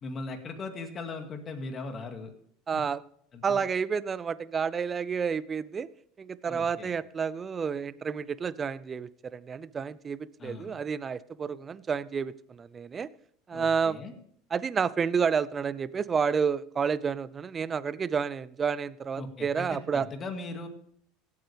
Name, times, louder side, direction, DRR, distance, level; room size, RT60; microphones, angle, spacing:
voice 1, 0.0-2.3 2.7-2.8 3.3-3.6 6.5-6.9 10.4-10.8 13.5-14.1 19.2-20.7, left 3 dB, 35° left, 5 dB, 2.1 m, -39 dB
voice 2, 2.7-3.0 3.4-5.9 6.2-13.1 13.5-14.0 14.5-20.1, right 6 dB, 30° right, 19 dB, 0.5 m, -30 dB
16.5 x 8.6 x 3.4 m, 0.66 s
supercardioid pair, 105°, 0 cm